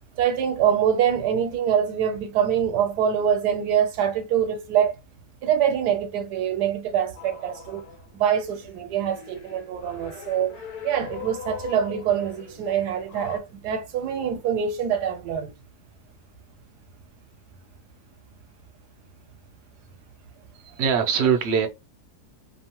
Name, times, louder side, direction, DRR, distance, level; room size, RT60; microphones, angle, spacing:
voice 1, 0.2-4.9 5.4-7.8 8.1-10.6 10.8-15.5, right 8 dB, 85° right, 1.2 m, -24 dB
sound 1, 7.2-8.1 8.4-13.4, left 6 dB, 75° left, 1.2 m, -41 dB
voice 2, 20.6-21.7, right 7 dB, 65° right, 0.7 m, -22 dB
2.8 x 2.0 x 2.9 m
omnidirectional pair, 1.7 m